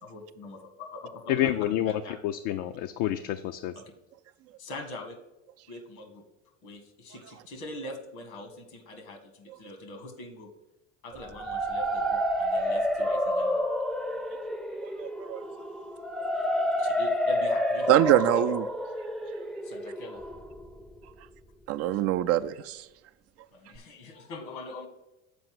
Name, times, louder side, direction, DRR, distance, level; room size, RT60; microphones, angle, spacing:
voice 1, 0.0-1.3 1.9-2.1 3.7-3.8 4.6-5.2 5.7-6.2 6.6-10.5 11.0-13.7 16.8-18.3 19.6-20.2 23.5-24.9, left 2 dB, 80° left, 1.7 m, -43 dB
voice 2, 1.3-3.7, left 12 dB, 65° left, 0.5 m, -28 dB
sound 1, 11.2-21.0, equal, ahead, 0.6 m, -29 dB
voice 3, 15.0-15.4 17.9-18.6 21.7-22.8, right 13 dB, 50° right, 0.4 m, -24 dB
6.9 x 4.5 x 5.9 m
supercardioid pair, 90°, 33 cm